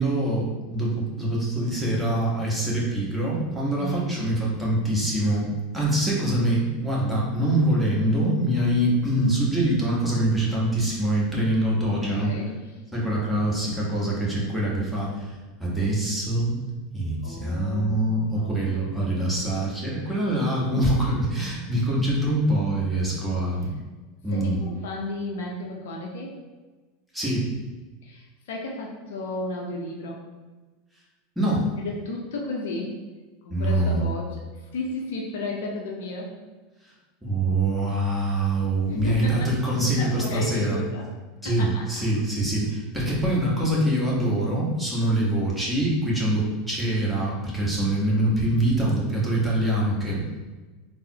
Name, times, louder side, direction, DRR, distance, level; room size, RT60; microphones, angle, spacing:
voice 1, 0.0-5.5 5.7-12.3 12.9-16.6 16.9-23.7 24.2-24.6 27.1-27.5 31.4-31.7 33.5-34.1 37.2-40.8 41.4-50.2, right 1 dB, 5° right, -6 dB, 1.1 m, -24 dB
voice 2, 3.8-4.3 11.7-11.8 12.0-12.5 17.2-18.7 20.1-20.2 21.0-21.7 24.3-26.4 28.0-30.2 31.8-32.9 33.4-36.3 38.9-39.5 39.8-41.1 41.4-41.9 45.6-45.7, left 2 dB, 65° left, -1 dB, 0.5 m, -34 dB
3.8 x 2.0 x 2.7 m, 1.3 s
figure-of-eight pair, 80°, 0 cm